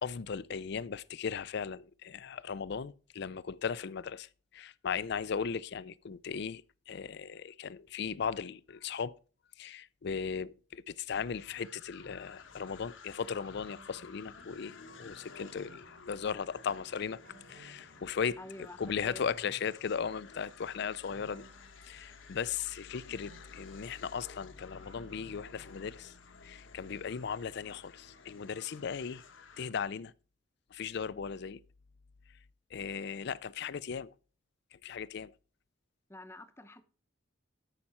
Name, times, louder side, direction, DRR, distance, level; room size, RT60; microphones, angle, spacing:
voice 1, 0.0-9.2 9.6-17.2 17.5-18.4 18.8-21.5 21.8-26.1 26.4-29.2 29.6-30.1 30.7-31.6 32.7-34.1 34.7-35.3, left 6 dB, 60° left, 0.4 m, -37 dB
sound 1, 11.1-29.7, left 5 dB, 75° left, 1.1 m, -54 dB
sound 2, 12.0-12.8 13.4-14.9 15.3-16.7 17.0-18.7 19.2-20.5 21.1-22.5 23.0-26.2 26.5-26.6, right 1 dB, 50° right, 3.8 m, -61 dB
voice 2, 18.4-18.8 19.0-19.2 36.1-36.8, left 1 dB, 15° left, 0.7 m, -47 dB
13.0 x 5.8 x 4.3 m
head